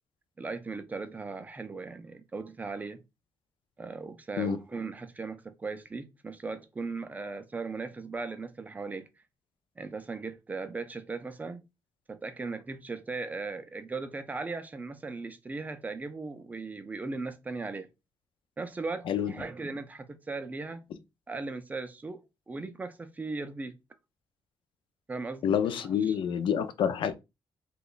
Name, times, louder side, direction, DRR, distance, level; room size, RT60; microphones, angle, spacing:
voice 1, 0.4-3.0 3.8-9.1 9.8-11.6 12.1-17.9 18.6-20.8 21.3-23.8 25.1-26.2 26.8-26.9, right 3 dB, 15° right, 0.4 m, -38 dB
voice 2, 25.4-27.1, left 8 dB, 65° left, 0.4 m, -27 dB
2.9 x 2.2 x 3.8 m
cardioid pair, 160°, 9 cm